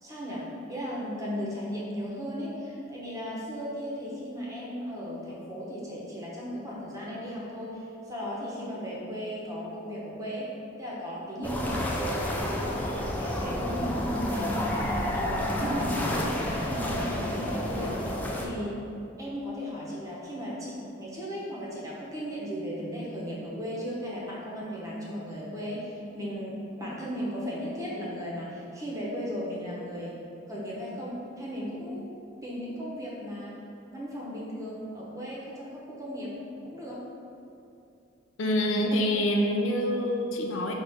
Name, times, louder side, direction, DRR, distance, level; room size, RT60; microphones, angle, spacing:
voice 1, 0.0-10.5 10.8-14.8 15.1-18.8 19.2-30.2 30.5-32.2 32.4-33.6 33.9-36.4 36.6-37.1, equal, 20° right, -6 dB, 0.8 m, -36 dB
sound 1, 11.4-18.5, equal, 10° left, 0.3 m, -30 dB
voice 2, 38.4-40.7, equal, 80° left, 2 dB, 0.5 m, -26 dB
5.3 x 2.4 x 3.4 m, 2.6 s
head